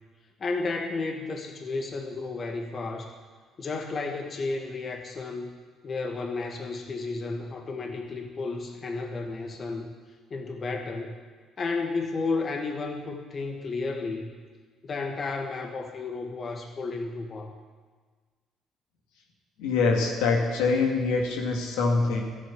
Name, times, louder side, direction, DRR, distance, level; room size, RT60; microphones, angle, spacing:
voice 1, 0.4-3.1 3.6-5.5 5.8-9.9 10.3-11.2 11.6-14.3 14.8-17.5, left 3 dB, 45° left, 3 dB, 2.0 m, -32 dB
voice 2, 19.6-22.2, left 4 dB, 80° left, 0 dB, 2.1 m, -24 dB
13.5 x 8.2 x 9.7 m, 1.5 s
hypercardioid pair, 55°, 0 cm